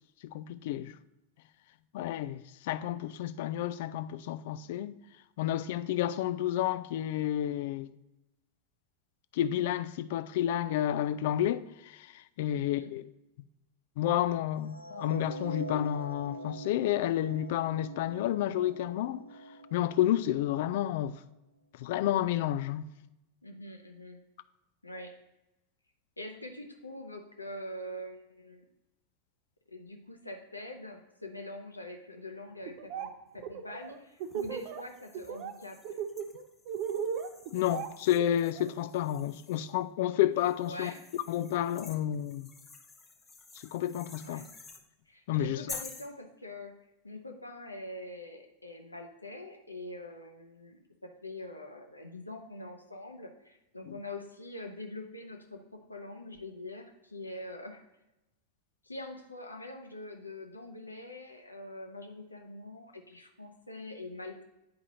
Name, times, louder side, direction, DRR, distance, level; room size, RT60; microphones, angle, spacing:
voice 1, 0.3-0.9 1.9-5.0 5.4-7.9 9.3-13.0 14.0-19.2 19.7-21.2 21.8-22.9 37.5-40.9 41.3-42.5 43.7-44.4 45.3-45.6 53.9-54.0, left 12 dB, 50° left, 0.3 m, -30 dB
voice 2, 12.5-13.0 23.4-24.2 24.8-25.1 26.2-28.6 29.7-36.0 40.6-41.0 44.2-44.5 45.1-46.7 47.0-57.8 58.8-64.4, left 1 dB, 85° left, 0.8 m, -44 dB
sound 1, 14.7-20.9, equal, 85° right, 0.4 m, -43 dB
Laughter, 32.7-33.1 33.4-34.8 35.1-35.5 35.8-38.7, right 8 dB, 45° right, 0.6 m, -36 dB
sound 2, 34.2-39.8 40.4-44.8 45.7-46.1, left 4 dB, 15° left, 0.8 m, -50 dB
9.6 x 4.8 x 2.8 m
figure-of-eight pair, 90°, 0 cm